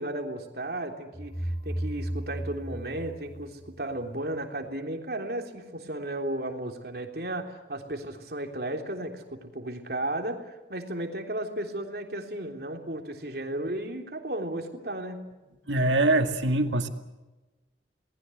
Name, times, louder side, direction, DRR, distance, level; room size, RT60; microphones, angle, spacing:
voice 1, 0.0-15.2, right 1 dB, 55° right, 4 dB, 3.5 m, -34 dB
sound 1, 1.1-4.0, right 1 dB, 35° left, 4.4 m, -34 dB
voice 2, 15.7-16.9, right 2 dB, 90° right, 6 dB, 2.2 m, -23 dB
28.0 x 20.0 x 7.9 m, 1.2 s
head